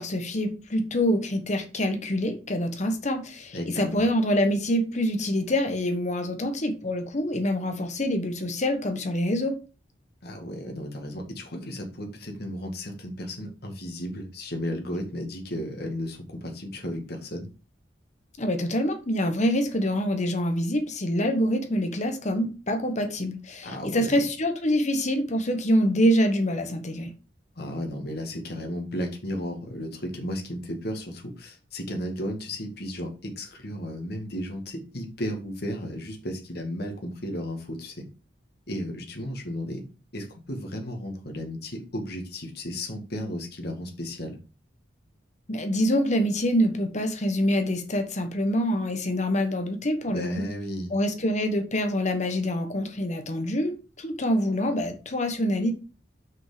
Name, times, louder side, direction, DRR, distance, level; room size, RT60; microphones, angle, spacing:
voice 1, 0.0-9.6 18.4-27.1 45.5-50.5 50.9-55.7, equal, 40° left, 1.2 m, -25 dB
voice 2, 3.5-4.0 10.2-17.5 23.6-24.2 27.6-38.0 38.7-39.8 40.1-44.4 50.1-50.9, equal, 60° left, 2.0 m, -34 dB
6.1 x 5.4 x 5.0 m
head